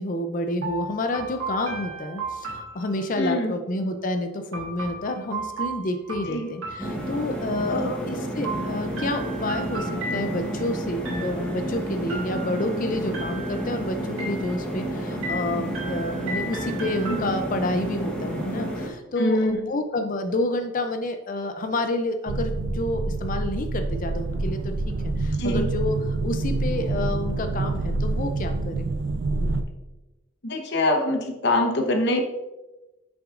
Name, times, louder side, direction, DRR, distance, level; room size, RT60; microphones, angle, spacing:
voice 1, 0.0-28.9, left 1 dB, 40° left, 7 dB, 0.5 m, -29 dB
sound 1, 0.6-3.4 4.5-7.5 8.4-10.6 11.1-11.7 12.1-12.8 13.1-13.8 14.2-14.8 15.2-17.7, right 2 dB, 90° right, 2.0 m, -35 dB
voice 2, 3.2-3.5 6.2-6.5 7.7-8.0 17.1-17.2 19.2-19.6 25.4-25.7 30.4-32.2, left 1 dB, 55° left, 4 dB, 1.0 m, -24 dB
sound 2, 6.8-18.9, right 1 dB, 5° left, 1.2 m, -31 dB
sound 3, 22.3-29.6, right 2 dB, 60° right, 0.5 m, -27 dB
8.6 x 6.0 x 2.5 m, 1.1 s
head